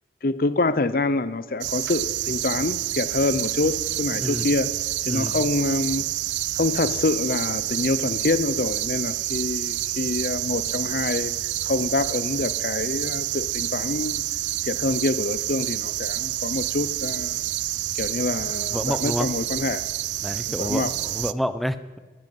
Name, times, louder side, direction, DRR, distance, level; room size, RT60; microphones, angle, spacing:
voice 1, 0.2-4.7 5.1-6.1 6.6-11.3 11.6-14.2 14.6-17.5 18.0-19.8 20.6-20.9, left 3 dB, 55° left, 14 dB, 0.6 m, -26 dB
sound 1, 1.6-21.3, right 14 dB, 90° right, 0.5 m, -28 dB
voice 2, 5.1-5.5 18.7-19.3 20.2-22.0, equal, ahead, 12 dB, 0.7 m, -28 dB
13.0 x 11.0 x 9.2 m, 1.4 s
head